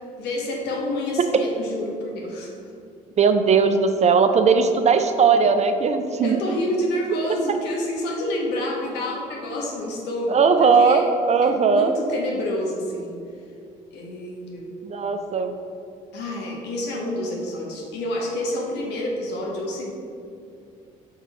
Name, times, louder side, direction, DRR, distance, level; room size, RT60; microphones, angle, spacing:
voice 1, 0.2-2.5 6.2-11.0 11.4-13.1 13.9-14.7 16.1-19.9, left 1 dB, 70° left, -1 dB, 1.3 m, -28 dB
voice 2, 3.2-6.5 10.3-11.9 14.8-15.6, right 5 dB, 40° right, 8 dB, 0.5 m, -18 dB
5.7 x 3.6 x 4.7 m, 2.5 s
hypercardioid pair, 55°, 18 cm